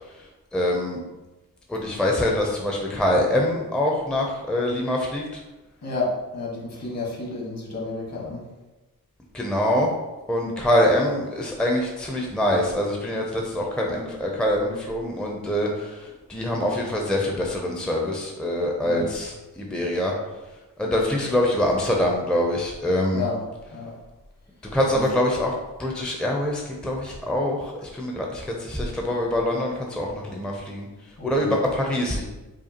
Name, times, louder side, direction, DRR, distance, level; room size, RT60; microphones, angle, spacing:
voice 1, 0.5-1.0 1.7-5.4 9.3-9.9 10.3-20.1 20.8-23.2 24.6-25.5 25.8-30.9 31.2-32.2, left 1 dB, 5° left, 0 dB, 0.5 m, -24 dB
voice 2, 1.9-2.3 5.8-8.4 18.8-19.2 23.1-23.4 23.7-23.9 24.9-25.2 31.2-31.6, left 3 dB, 50° left, -3 dB, 1.4 m, -31 dB
5.0 x 2.3 x 2.9 m, 1.1 s
cardioid pair, 75°, 34 cm